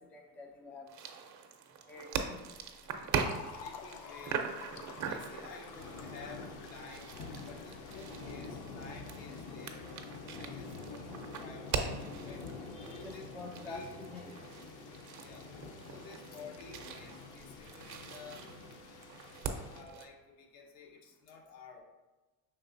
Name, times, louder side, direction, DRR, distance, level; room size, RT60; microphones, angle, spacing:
voice 1, 0.1-0.9 1.8-2.4 12.7-14.3, left 3 dB, 5° left, 1 dB, 0.3 m, -47 dB
sound 1, 0.9-20.1, right 6 dB, 40° right, 0.6 m, -42 dB
Fill (with liquid), 2.5-8.9, left 5 dB, 85° left, 0.7 m, -50 dB
sound 2, 3.2-19.8, left 4 dB, 40° left, 0.7 m, -48 dB
voice 2, 3.5-4.5 5.0-7.2 7.4-9.9 10.4-12.4 12.9-13.3 13.7-13.9 15.2-15.5 15.9-18.4 19.7-21.8, left 4 dB, 65° left, 1 dB, 1.1 m, -52 dB
5.3 x 3.9 x 2.6 m, 1.2 s
hypercardioid pair, 70°, 48 cm